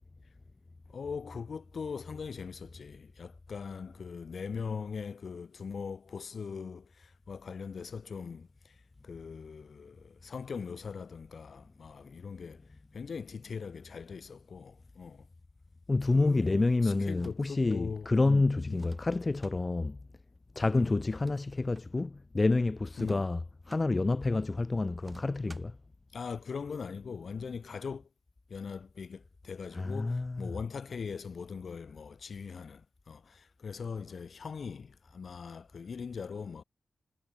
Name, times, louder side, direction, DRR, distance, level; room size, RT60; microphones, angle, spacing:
voice 1, 0.9-15.3 16.1-18.9 20.7-20.9 23.0-23.2 26.1-28.1 28.5-36.6, left 5 dB, 65° left, 6.5 m, -41 dB
voice 2, 15.9-20.0 20.6-23.4 23.7-25.8 29.7-30.5, left 3 dB, 40° left, 1.7 m, -28 dB
sound 1, 17.1-17.8 18.7-19.6 21.0-21.9 22.9-23.9 25.0-25.8, right 2 dB, 35° right, 5.8 m, -54 dB
supercardioid pair, 40°, 0 cm